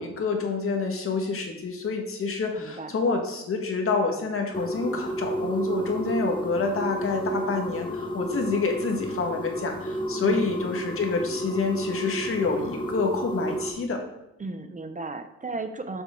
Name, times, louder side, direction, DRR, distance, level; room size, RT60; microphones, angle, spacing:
voice 1, 0.0-14.0, left 4 dB, 45° left, 3 dB, 1.7 m, -28 dB
voice 2, 2.6-2.9 10.2-10.6 14.4-16.0, right 3 dB, 25° right, 7 dB, 0.7 m, -35 dB
sound 1, 4.5-13.7, right 1 dB, 15° left, 1.3 m, -31 dB
7.1 x 6.7 x 3.8 m, 0.92 s
cardioid pair, 90°, 30 cm